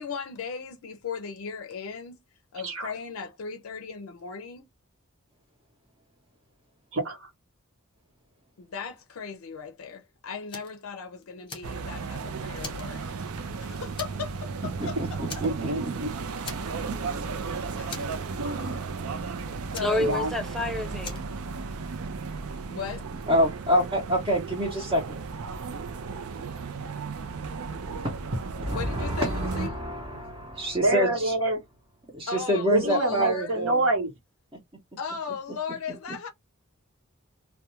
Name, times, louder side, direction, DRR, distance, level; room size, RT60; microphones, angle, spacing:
voice 1, 0.0-2.2 2.5-4.7 8.6-13.2 13.6-15.2 17.4-18.1 19.7-20.2 22.7-23.1 28.7-29.7 32.3-33.6 35.0-36.3, left 6 dB, 75° left, 0.5 m, -37 dB
voice 2, 6.9-7.3 15.4-16.1 18.4-18.8 20.0-20.3 30.8-31.6 32.7-34.1, right 2 dB, 65° right, 1.0 m, -26 dB
Fire, 10.5-10.8 11.2-12.1 12.6-13.5 14.0-14.4 14.7-14.8 15.3-16.0 16.4-17.0 17.3-17.4 17.9-18.7 19.7-20.6 21.0-21.4, left 4 dB, 25° left, 0.8 m, -41 dB
sound 1, 11.6-29.7, right 4 dB, 85° right, 0.5 m, -35 dB
voice 3, 14.8-15.9 16.9-17.0 23.3-25.2 28.6-30.1 30.6-31.3 32.1-33.7, equal, 25° right, 0.7 m, -27 dB
voice 4, 19.8-21.2, left 1 dB, ahead, 0.3 m, -28 dB
2.3 x 2.2 x 2.9 m
head